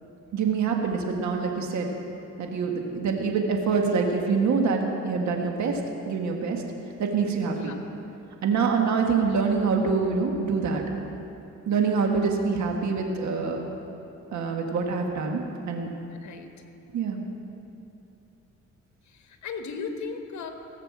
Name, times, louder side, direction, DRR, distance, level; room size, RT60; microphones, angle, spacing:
voice 1, 0.3-1.9 2.4-5.8 6.1-6.6 7.0-7.7 8.4-10.8 11.7-13.6 14.3-15.4 15.7-15.9 16.9-17.2, right 5 dB, 70° right, 2 dB, 1.6 m, -25 dB
voice 2, 7.5-7.8 16.2-16.5 17.3-17.4 19.0-20.5, left 5 dB, 70° left, 5 dB, 1.3 m, -37 dB
16.5 x 6.7 x 7.5 m, 2.9 s
cardioid pair, 90°, 30 cm